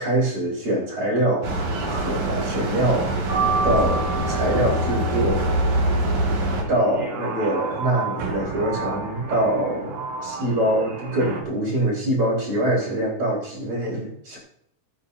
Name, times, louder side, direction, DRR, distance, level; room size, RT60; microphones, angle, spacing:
voice 1, 0.0-5.8 6.7-14.4, right 1 dB, 40° right, -10 dB, 5.3 m, -24 dB
sound 1, 1.4-6.6, right 1 dB, 65° right, 3.7 m, -24 dB
sound 2, 3.3-11.4, right 4 dB, 80° right, 4.2 m, -30 dB
23.5 x 9.4 x 2.8 m, 0.73 s
omnidirectional pair, 3.9 m